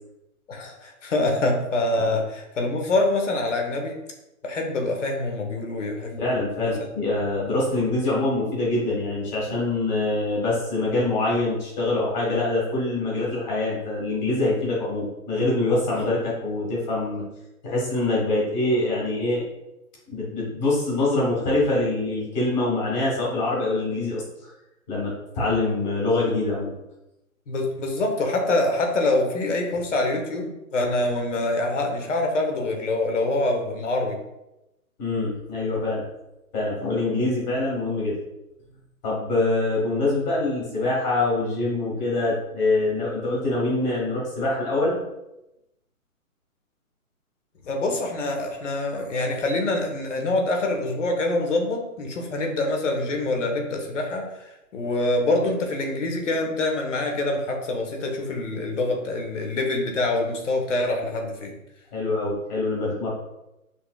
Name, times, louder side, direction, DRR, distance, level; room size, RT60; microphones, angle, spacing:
voice 1, 0.5-3.9 4.4-6.2 6.6-6.7 27.5-34.2 47.6-61.5, left 2 dB, 55° left, 3 dB, 1.1 m, -25 dB
voice 2, 6.2-17.2 17.6-19.4 20.1-24.5 24.9-26.7 35.0-36.0 36.5-38.2 39.0-45.0 61.9-63.1, left 2 dB, 30° left, -5 dB, 1.6 m, -24 dB
5.7 x 3.4 x 2.3 m, 0.91 s
hypercardioid pair, 155°, 43 cm